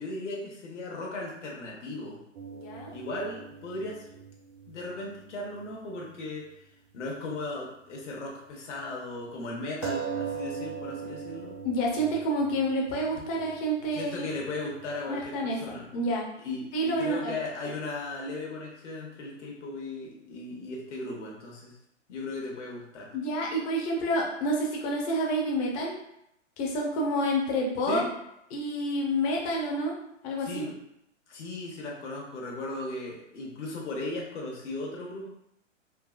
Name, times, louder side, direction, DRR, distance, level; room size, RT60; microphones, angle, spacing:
voice 1, 0.0-2.2 2.9-4.0 4.7-6.5 6.9-11.6 13.9-15.9 16.4-21.7 22.1-23.1 27.9-28.1 30.4-30.8 31.3-35.3, left 2 dB, 65° left, -2 dB, 1.2 m, -37 dB
sound 1, 2.3-6.2 6.5-6.6 9.8-15.0, right 6 dB, 40° right, 0.5 m, -40 dB
voice 2, 2.5-2.9 11.6-14.3 15.1-16.2 16.7-17.3 23.1-25.9 26.6-28.0 28.5-29.9 30.2-30.6, equal, 20° left, -1 dB, 0.7 m, -28 dB
3.8 x 2.7 x 2.4 m, 0.79 s
hypercardioid pair, 130°, 38 cm